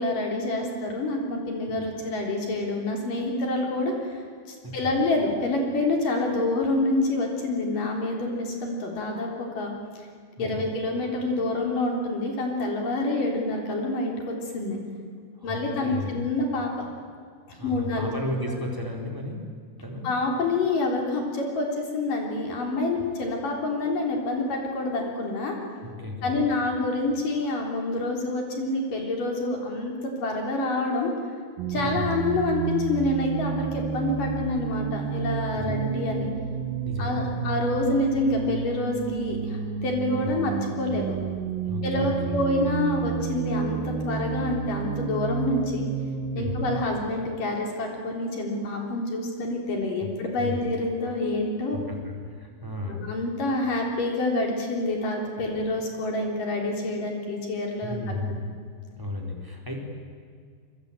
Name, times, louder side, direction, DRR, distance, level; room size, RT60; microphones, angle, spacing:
voice 1, 0.0-4.2 4.5-9.7 10.4-14.8 15.4-16.9 17.5-18.1 20.0-25.6 26.2-31.1 31.7-36.3 37.0-41.2 41.8-45.9 46.3-51.8 52.9-58.0, left 2 dB, 45° left, 1 dB, 5.0 m, -27 dB
voice 2, 15.4-16.1 17.6-19.4 19.8-20.0 25.8-26.4 31.7-32.1 35.5-35.9 36.8-37.5 40.1-40.3 41.7-42.4 46.4-46.6 50.0-50.1 50.4-50.6 51.7-53.0 57.8-58.5 59.0-59.8, left 1 dB, 5° right, 0 dB, 4.0 m, -34 dB
sound 1, 31.6-46.9, right 8 dB, 65° right, 2.4 m, -31 dB
28.5 x 23.0 x 9.1 m, 2.1 s
omnidirectional pair, 5.4 m